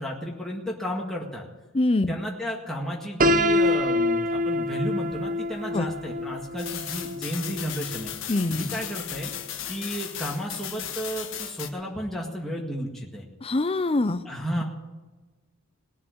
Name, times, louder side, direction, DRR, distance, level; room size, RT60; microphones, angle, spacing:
voice 1, 0.0-1.5 2.1-8.1 8.5-9.3 9.7-13.3 14.2-14.6, equal, ahead, -3 dB, 1.9 m, -32 dB
voice 2, 1.7-2.1 5.7-5.9 8.3-8.6 13.4-14.2, left 2 dB, 25° left, 13 dB, 0.5 m, -24 dB
Piano, 3.2-9.1, left 1 dB, 40° right, 0.7 m, -26 dB
sound 1, 6.6-11.7, left 10 dB, 60° left, 1.4 m, -36 dB
19.0 x 7.4 x 9.6 m, 1.2 s
head